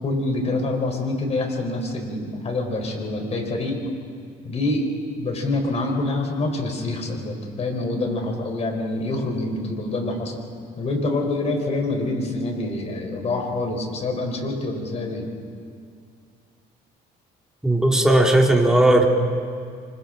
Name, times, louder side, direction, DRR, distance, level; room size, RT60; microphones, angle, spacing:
voice 1, 0.0-3.8 4.4-4.9 5.1-10.4 10.8-15.3, left 2 dB, 40° left, 2 dB, 4.4 m, -26 dB
voice 2, 17.6-19.1, right 1 dB, 5° right, 0 dB, 2.5 m, -16 dB
28.0 x 25.0 x 3.9 m, 2.2 s
cardioid pair, 110°, 17 cm